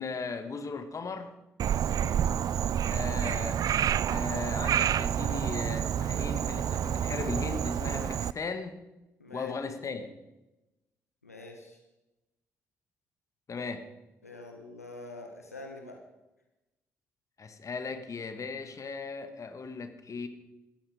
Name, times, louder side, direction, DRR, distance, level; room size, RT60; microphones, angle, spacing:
voice 1, 0.0-1.3 2.9-3.6 4.0-8.8 9.3-10.1 13.5-13.8 17.4-20.3, left 4 dB, 40° left, 9 dB, 1.8 m, -37 dB
Frog, 1.6-8.3, right 9 dB, 50° right, 0.4 m, -29 dB
voice 2, 1.8-2.2 9.2-9.5 11.2-11.8 14.2-16.0, left 2 dB, 90° left, 3 dB, 1.2 m, -45 dB
18.0 x 14.0 x 5.1 m, 0.99 s
figure-of-eight pair, 40°, 8 cm